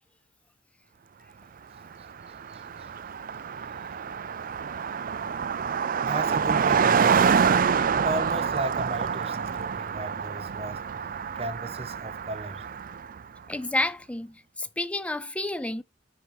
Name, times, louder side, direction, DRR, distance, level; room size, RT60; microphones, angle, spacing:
Car passing by, 1.9-2.0 2.2-13.2, right 6 dB, 50° right, 0.5 m, -27 dB
voice 1, 2.5-2.9 6.0-7.5 7.9-10.8 11.4-12.6, right 2 dB, 35° right, 1.0 m, -35 dB
voice 2, 13.5-15.8, left 2 dB, 5° left, 0.5 m, -30 dB
10.5 x 4.7 x 3.1 m
head